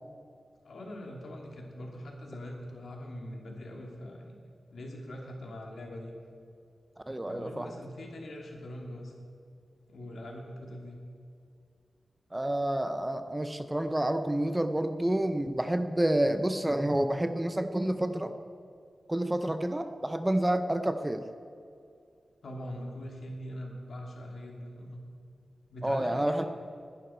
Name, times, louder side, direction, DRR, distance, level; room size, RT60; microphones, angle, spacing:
voice 1, 0.6-4.4 4.7-6.1 7.3-9.1 9.9-11.0 22.4-25.0 25.7-26.5, left 1 dB, 65° left, 0 dB, 2.6 m, -42 dB
voice 2, 7.1-7.7 12.3-18.3 19.1-21.3 25.8-26.5, right 1 dB, 10° right, 8 dB, 0.6 m, -29 dB
20.5 x 11.0 x 4.4 m, 2.4 s
wide cardioid pair, 170°, 0 cm